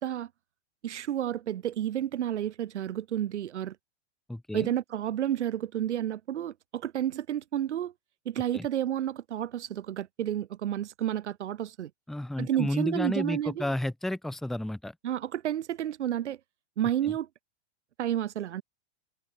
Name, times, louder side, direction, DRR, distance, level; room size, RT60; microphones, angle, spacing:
voice 1, 0.8-3.8 4.5-7.9 8.3-11.9 12.4-13.7 15.0-16.4 16.8-17.3 18.0-18.6, right 11 dB, 70° right, 2.3 m, -31 dB
voice 2, 4.3-4.7 8.5-8.7 12.1-14.9, left 1 dB, ahead, 1.2 m, -32 dB
supercardioid pair, 175°, 36 cm